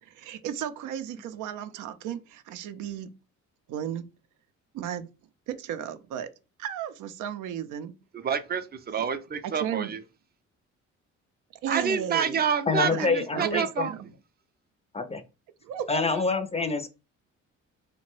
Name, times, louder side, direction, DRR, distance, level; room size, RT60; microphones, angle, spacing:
voice 1, 0.0-3.1 3.7-4.0 4.7-5.1 5.5-6.3 6.6-7.9 9.4-9.9 11.6-12.4 12.9-14.1 15.6-16.2, right 9 dB, 85° right, 0.5 m, -34 dB
voice 2, 8.2-10.0 11.7-13.9, right 7 dB, 30° right, 0.5 m, -28 dB
voice 3, 12.7-13.9 14.9-15.2 15.9-16.9, left 4 dB, 20° left, 0.4 m, -26 dB
2.9 x 2.1 x 3.0 m
cardioid pair, 90°, 30 cm